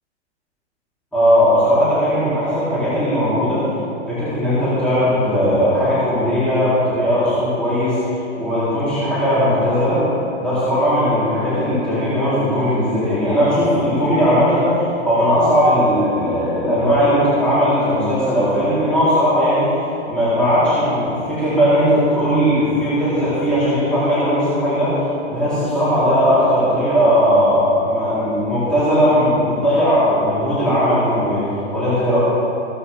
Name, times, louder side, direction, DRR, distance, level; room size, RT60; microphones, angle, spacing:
voice 1, 1.1-3.7 4.1-8.0 8.4-10.0 10.4-19.8 20.1-25.0 25.3-32.2, equal, 5° left, -14 dB, 3.6 m, -18 dB
16.5 x 16.0 x 3.5 m, 3.0 s
hypercardioid pair, 170°, 35 cm